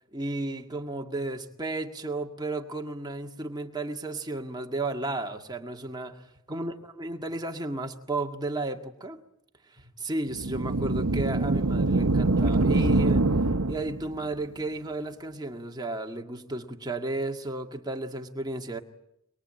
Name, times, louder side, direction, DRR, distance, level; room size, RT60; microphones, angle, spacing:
voice 1, 0.1-6.2 6.5-9.2 10.0-13.3 13.7-18.8, right 2 dB, 20° right, 1.9 m, -33 dB
sound 1, 10.3-14.1, right 2 dB, 80° right, 1.0 m, -24 dB
24.5 x 22.5 x 8.9 m
head